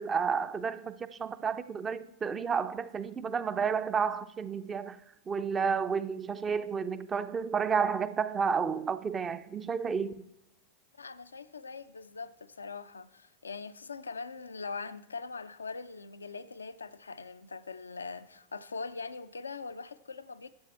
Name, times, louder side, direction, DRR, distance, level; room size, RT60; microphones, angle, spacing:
voice 1, 0.0-5.0 5.3-10.1, right 6 dB, 25° right, 0.5 m, -31 dB
voice 2, 11.0-20.5, left 4 dB, 80° left, 0.4 m, -42 dB
11.5 x 7.4 x 4.4 m
figure-of-eight pair, 90°, 0 cm